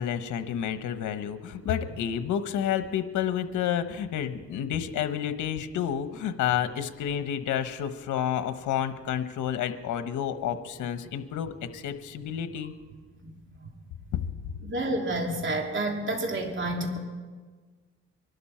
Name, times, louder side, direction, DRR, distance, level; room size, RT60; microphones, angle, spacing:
voice 1, 0.0-12.7, left 9 dB, 80° left, 10 dB, 1.1 m, -30 dB
voice 2, 14.6-17.0, right 1 dB, 40° right, 1 dB, 3.0 m, -29 dB
23.5 x 12.0 x 4.4 m, 1.4 s
cardioid pair, 90°, 30 cm